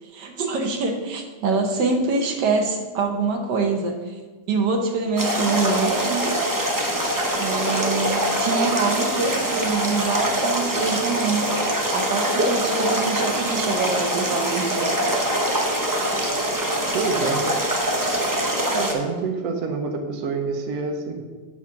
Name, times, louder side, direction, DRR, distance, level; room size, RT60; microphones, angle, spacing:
voice 1, 0.0-4.2 4.5-6.4 7.4-11.5 11.9-14.9, right 4 dB, 85° right, 4 dB, 1.6 m, -25 dB
sound 1, 5.2-18.9, right 1 dB, 20° right, 0.6 m, -23 dB
voice 2, 16.9-17.5 18.7-21.2, right 4 dB, 65° right, 4 dB, 1.3 m, -27 dB
8.6 x 4.2 x 5.8 m, 1.4 s
omnidirectional pair, 1.8 m